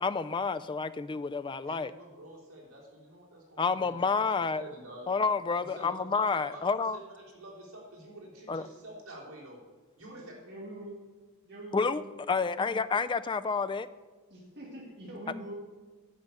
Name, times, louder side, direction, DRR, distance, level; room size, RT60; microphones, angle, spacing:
voice 1, 0.0-1.9 3.6-4.6 5.1-7.0 8.5-8.6 11.7-12.0 12.3-13.9, left 4 dB, 20° left, 13 dB, 0.3 m, -29 dB
voice 2, 1.6-3.9 4.5-5.1 5.6-9.6 10.0-10.3, right 1 dB, 75° right, -4 dB, 3.6 m, -48 dB
voice 3, 10.0-11.0 11.4-12.0 14.3-15.5, right 1 dB, 50° right, -3 dB, 2.2 m, -44 dB
10.5 x 5.5 x 8.2 m, 1.3 s
head